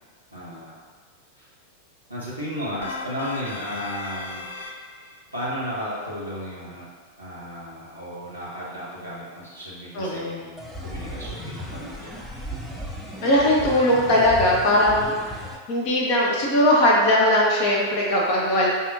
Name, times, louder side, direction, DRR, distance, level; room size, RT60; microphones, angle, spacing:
voice 1, 0.3-0.8 1.4-1.5 2.1-4.8 5.3-6.9 7.2-12.2, equal, 90° left, -10 dB, 1.0 m, -34 dB
sound 1, 2.8-5.2, left 4 dB, 65° left, 0.3 m, -36 dB
voice 2, 9.9-10.4 13.2-15.4 15.7-18.7, left 1 dB, 45° left, -4 dB, 0.8 m, -20 dB
sound 2, 10.6-15.6, equal, ahead, 0.5 m, -35 dB
5.2 x 2.7 x 2.6 m, 1.5 s
figure-of-eight pair, 90°, 0 cm